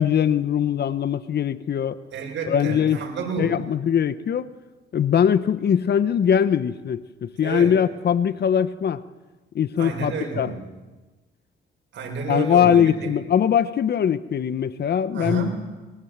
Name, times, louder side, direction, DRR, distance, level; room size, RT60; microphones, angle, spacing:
voice 1, 0.0-2.0 2.5-3.0 3.4-4.5 4.9-9.0 9.5-10.5 12.3-15.6, left 8 dB, 55° left, 1.2 m, -21 dB
voice 2, 2.1-3.6 7.4-7.7 9.8-10.6 11.9-13.1 15.1-15.6, right 5 dB, 70° right, 7.3 m, -30 dB
27.5 x 23.0 x 7.5 m
cardioid pair, 90°, 20 cm